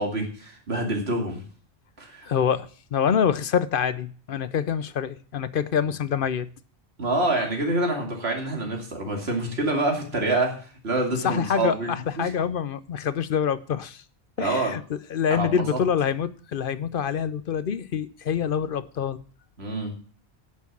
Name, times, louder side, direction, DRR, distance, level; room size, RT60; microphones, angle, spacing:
voice 1, 0.0-1.4 2.0-2.3 7.0-11.9 12.2-12.3 14.4-14.7 15.3-15.8 19.6-19.9, right 2 dB, 70° right, 2.6 m, -26 dB
voice 2, 2.2-6.5 11.1-14.0 14.4-19.2, left 7 dB, 60° left, 0.8 m, -26 dB
11.0 x 6.5 x 6.0 m
omnidirectional pair, 1.1 m